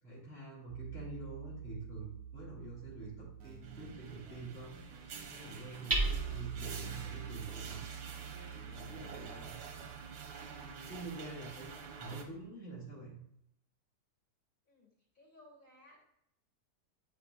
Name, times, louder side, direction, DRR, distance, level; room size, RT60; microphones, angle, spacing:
voice 1, 0.0-4.9 5.2-7.8 8.6-9.8 10.6-11.7 12.0-13.2, right 3 dB, 5° left, -7 dB, 2.1 m, -47 dB
Hammer, 0.7-12.4, right 3 dB, 15° right, 1.4 m, -42 dB
sound 1, 3.4-6.4 6.8-9.8, right 3 dB, 75° right, 1.2 m, -58 dB
sound 2, 3.6-12.2, right 6 dB, 90° right, 1.4 m, -49 dB
voice 2, 14.7-16.0, left 1 dB, 30° left, -6 dB, 2.8 m, -60 dB
8.9 x 4.7 x 2.4 m, 0.75 s
omnidirectional pair, 1.7 m